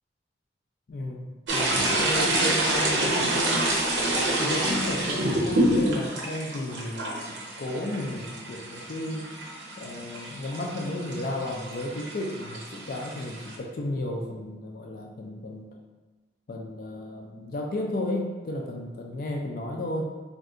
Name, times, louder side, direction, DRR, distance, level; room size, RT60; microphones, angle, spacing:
voice 1, 0.9-3.7 4.4-9.3 9.8-15.8 16.5-20.1, left 1 dB, 55° left, 0 dB, 0.4 m, -33 dB
sound 1, 1.5-13.5, right 1 dB, 90° right, 0.7 m, -27 dB
2.6 x 2.3 x 3.7 m, 1.3 s
head